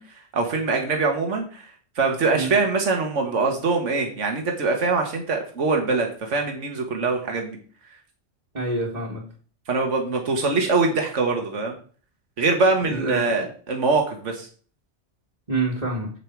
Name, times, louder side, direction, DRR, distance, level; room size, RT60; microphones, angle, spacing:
voice 1, 0.0-1.7 2.0-7.6 9.7-11.7 12.4-14.5, right 3 dB, 80° right, 3 dB, 1.8 m, -23 dB
voice 2, 8.5-9.2 12.8-13.5 15.5-16.1, right 2 dB, 35° right, -3 dB, 2.1 m, -27 dB
8.6 x 8.1 x 4.6 m, 0.42 s
omnidirectional pair, 1.2 m